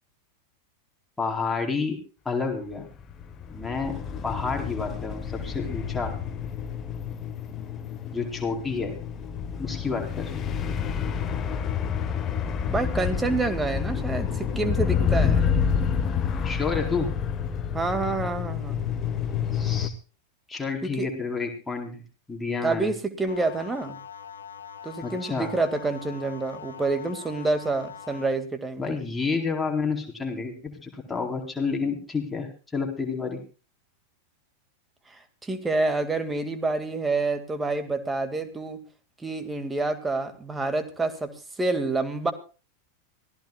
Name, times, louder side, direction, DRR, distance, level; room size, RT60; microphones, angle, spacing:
voice 1, 1.2-2.0 2.2-2.9 3.5-4.0 4.2-6.1 8.1-8.9 9.6-10.4 16.4-17.1 19.5-19.9 20.5-22.0 22.3-22.9 25.0-25.5 28.8-33.4, left 4 dB, 10° left, 1 dB, 4.2 m, -29 dB
sound 1, 3.0-19.9, left 7 dB, 25° left, 1.4 m, -28 dB
voice 2, 12.7-15.4 17.7-18.8 20.8-21.1 22.6-24.0 24.8-29.0 35.1-38.8 39.2-41.3 41.6-42.3, right 3 dB, 10° right, 8 dB, 2.2 m, -28 dB
sound 2, 23.3-28.3, left 8 dB, 70° left, 1.3 m, -42 dB
25.5 x 16.0 x 2.4 m, 0.35 s
figure-of-eight pair, 90°, 0 cm